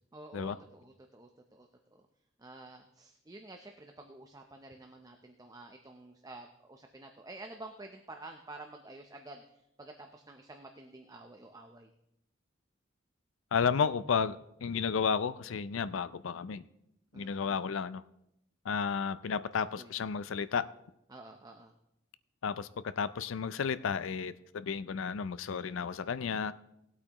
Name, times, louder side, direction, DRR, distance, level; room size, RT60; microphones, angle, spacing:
voice 1, 0.1-2.1 2.4-9.4 9.8-11.9 17.1-17.6 19.7-19.9 21.1-21.7, right 2 dB, 20° right, 4 dB, 0.6 m, -50 dB
voice 2, 13.5-16.6 17.1-18.0 18.6-20.7 22.4-26.5, left 6 dB, 80° left, 15 dB, 0.5 m, -32 dB
18.5 x 8.4 x 3.0 m, 0.82 s
head